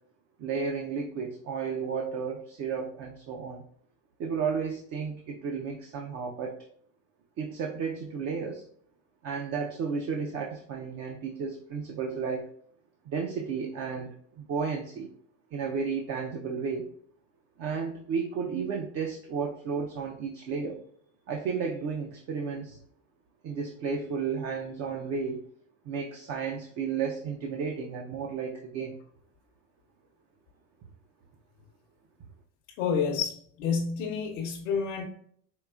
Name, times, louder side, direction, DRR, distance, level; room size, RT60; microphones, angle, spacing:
voice 1, 0.4-3.6 4.2-6.6 7.4-8.6 9.2-12.5 13.1-15.1 15.5-16.9 17.6-20.8 21.3-22.8 23.4-25.4 25.8-28.9, right 5 dB, 40° right, 2 dB, 0.5 m, -33 dB
voice 2, 32.8-35.1, left 6 dB, 80° left, 0 dB, 0.8 m, -29 dB
4.6 x 3.3 x 2.3 m, 0.62 s
supercardioid pair, 130°, 40 cm